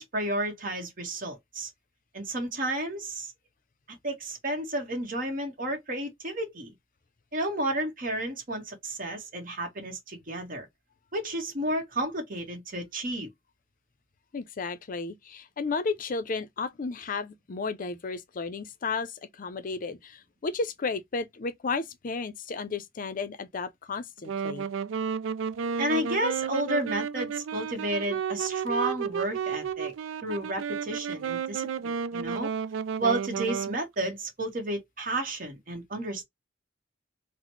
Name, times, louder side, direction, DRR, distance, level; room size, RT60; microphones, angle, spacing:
voice 1, 0.0-1.7 2.1-3.3 3.9-6.7 7.3-10.7 11.1-13.3 25.8-29.9 30.2-32.5 33.0-36.2, right 1 dB, 45° right, 1.1 m, -32 dB
voice 2, 14.3-24.7, left 4 dB, 45° left, 0.5 m, -33 dB
Wind instrument woodwind instrument, 24.3-33.8, right 7 dB, 85° right, 0.3 m, -32 dB
3.9 x 2.1 x 3.0 m
head